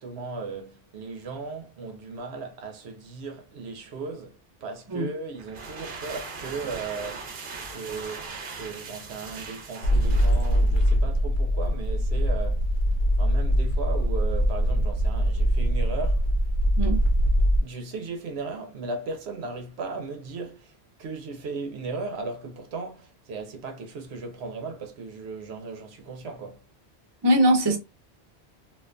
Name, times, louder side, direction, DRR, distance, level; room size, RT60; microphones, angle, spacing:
voice 1, 0.0-7.3 7.7-12.7 13.2-16.3 17.6-26.7, right 4 dB, 80° right, 0.9 m, -36 dB
sound 1, 5.4-11.1, right 4 dB, 55° right, 0.8 m, -39 dB
sound 2, 9.8-17.6, equal, 70° left, 0.8 m, -22 dB
voice 2, 27.2-27.8, equal, 30° right, 0.6 m, -21 dB
2.5 x 2.3 x 2.4 m
omnidirectional pair, 1.1 m